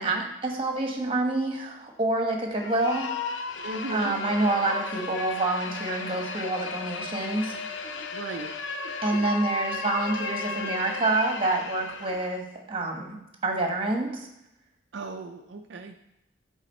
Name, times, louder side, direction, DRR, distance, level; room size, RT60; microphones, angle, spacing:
voice 1, 0.0-3.1 3.9-7.6 9.0-12.4 12.7-13.2 13.4-14.3, right 2 dB, 30° right, 2 dB, 1.3 m, -27 dB
sound 1, 2.5-12.4, left 4 dB, 80° left, 0.7 m, -35 dB
voice 2, 3.6-4.1 8.1-8.5 14.9-16.0, right 2 dB, 70° right, 4 dB, 0.5 m, -36 dB
8.2 x 3.6 x 5.4 m, 0.90 s
head